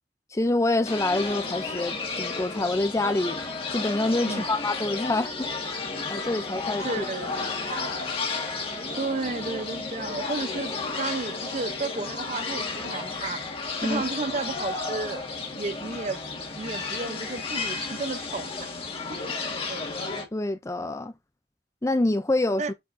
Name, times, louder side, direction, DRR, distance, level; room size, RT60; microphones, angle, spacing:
voice 1, 0.3-3.4 3.7-5.5 6.1-7.0 13.8-14.0 20.3-21.1 21.8-22.7, left 2 dB, 15° left, 0.5 m, -26 dB
sound 1, 0.8-20.2, left 4 dB, 30° left, 1.7 m, -32 dB
voice 2, 6.8-7.3 9.0-13.4 13.8-15.2 15.6-16.2 16.6-18.7 19.1-19.3 19.7-19.9 22.6-22.7, right 3 dB, 40° right, 0.7 m, -32 dB
8.4 x 4.6 x 2.6 m
head